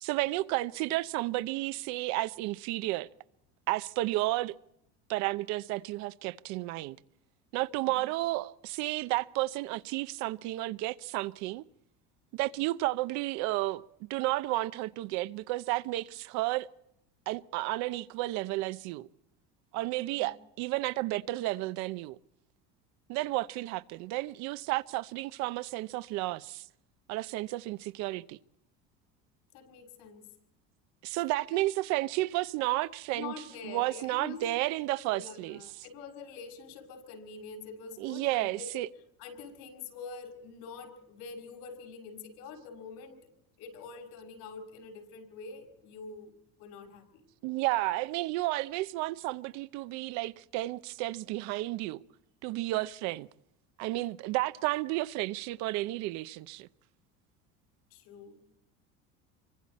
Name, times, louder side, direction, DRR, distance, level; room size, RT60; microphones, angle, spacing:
voice 1, 0.0-3.1 3.7-4.6 5.1-7.0 7.5-11.6 12.3-13.8 14.1-16.7 17.3-19.1 19.7-22.2 23.1-26.6 27.1-28.4 31.0-33.3 33.6-35.6 38.0-38.9 47.4-52.0 52.4-53.3 53.8-56.7, right 18 dB, 65° right, 0.8 m, -32 dB
voice 2, 20.0-20.3 29.5-30.3 33.1-34.5 35.1-38.9 39.2-43.2 43.6-46.3 46.6-47.2 57.9-58.5, left 5 dB, 80° left, 6.3 m, -45 dB
28.0 x 24.5 x 4.3 m
cardioid pair, 150°, 30 cm